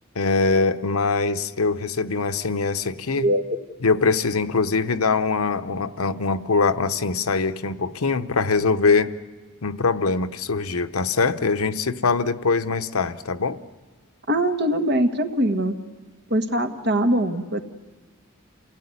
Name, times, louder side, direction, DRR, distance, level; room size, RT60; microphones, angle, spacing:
voice 1, 0.1-3.3 3.8-9.1 9.6-13.6, left 4 dB, 90° left, 10 dB, 0.9 m, -22 dB
voice 2, 14.3-15.8 16.3-17.6, right 1 dB, 50° right, 6 dB, 1.5 m, -22 dB
28.0 x 17.0 x 9.8 m, 1.3 s
head